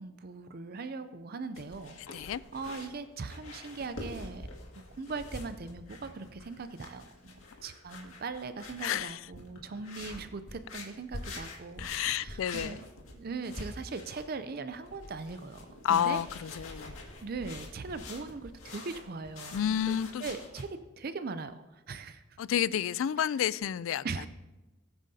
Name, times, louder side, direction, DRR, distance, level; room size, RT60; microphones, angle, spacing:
voice 1, 0.0-4.5 4.9-7.3 7.6-16.2 17.2-22.2 24.0-24.3, right 4 dB, 45° right, 0.5 m, -40 dB
sound 1, 1.5-20.6, left 2 dB, 85° left, 2.1 m, -46 dB
voice 2, 8.8-9.2 11.8-12.8 15.8-16.9 19.5-20.2 22.4-24.1, left 9 dB, 70° left, 0.3 m, -30 dB
20.0 x 9.1 x 2.8 m
head